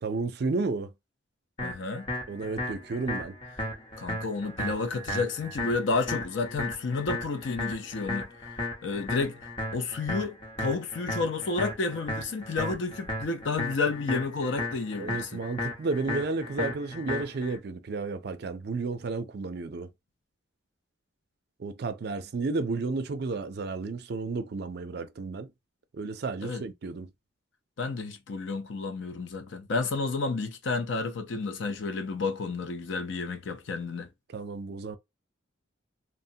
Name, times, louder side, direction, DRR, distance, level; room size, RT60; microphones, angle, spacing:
voice 1, 0.0-0.9 2.3-3.3 15.0-19.9 21.6-25.5 25.9-27.1 34.3-35.0, right 3 dB, 50° right, 0.4 m, -32 dB
voice 2, 1.6-2.1 4.0-8.3 8.8-15.4 26.4-26.6 27.8-34.1, left 4 dB, 65° left, 0.5 m, -31 dB
sound 1, 1.6-17.6, left 2 dB, 25° left, 0.8 m, -35 dB
3.0 x 2.1 x 2.7 m
head